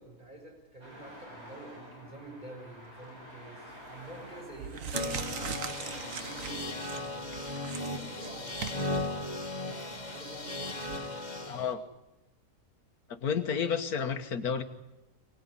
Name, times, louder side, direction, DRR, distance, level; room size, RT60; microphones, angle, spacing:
voice 1, 0.0-11.3, right 2 dB, 30° right, 0 dB, 6.8 m, -49 dB
Traffic noise roadway noise, 0.8-7.4, equal, 45° right, 7.1 m, -50 dB
sound 1, 3.7-4.0 4.5-11.0, right 6 dB, 60° right, 1.5 m, -41 dB
sound 2, 4.9-11.7, left 2 dB, 30° left, 2.0 m, -37 dB
voice 2, 11.5-11.8 13.1-14.6, left 7 dB, 80° left, 8 dB, 1.7 m, -31 dB
24.0 x 19.0 x 9.9 m, 0.97 s
omnidirectional pair, 1.6 m